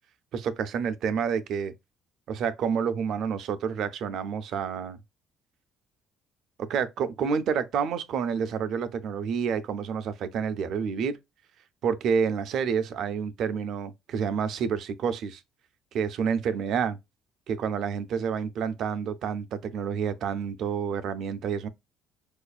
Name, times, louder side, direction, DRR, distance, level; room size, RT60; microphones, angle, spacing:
voice 1, 0.3-1.7 2.3-5.0 6.6-11.2 11.8-15.4 15.9-17.0 17.5-21.7, right 6 dB, 65° right, 0.5 m, -29 dB
4.7 x 2.5 x 2.3 m
supercardioid pair, 80°, 0 cm